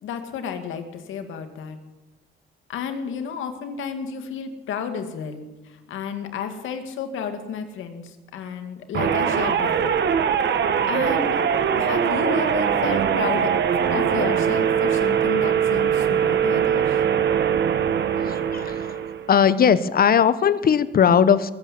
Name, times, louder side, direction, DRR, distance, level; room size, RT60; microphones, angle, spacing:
voice 1, 0.0-1.8 2.7-10.0 10.9-11.4 11.8-13.5 13.9-17.0, left 6 dB, 80° left, 6 dB, 2.2 m, -32 dB
sound 1, 8.9-19.3, right 8 dB, 60° right, 1.5 m, -22 dB
voice 2, 18.2-19.0 19.3-21.5, left 7 dB, 50° left, 15 dB, 0.9 m, -19 dB
20.5 x 8.5 x 7.5 m, 1.1 s
cardioid pair, 90°, 20 cm